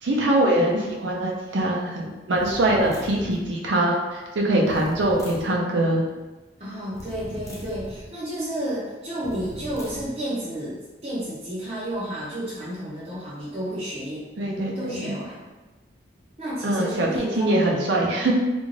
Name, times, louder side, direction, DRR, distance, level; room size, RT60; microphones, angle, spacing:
voice 1, 0.0-6.0 14.4-15.1 16.6-18.3, right 1 dB, 85° right, -2 dB, 0.6 m, -23 dB
sound 1, 2.4-3.5 4.6-5.6 6.9-8.1 9.2-10.1, equal, 15° left, 0.4 m, -40 dB
voice 2, 6.6-14.2 14.8-15.5 16.4-17.6, right 1 dB, 35° right, -8 dB, 0.6 m, -31 dB
2.4 x 2.3 x 3.1 m, 1.2 s
head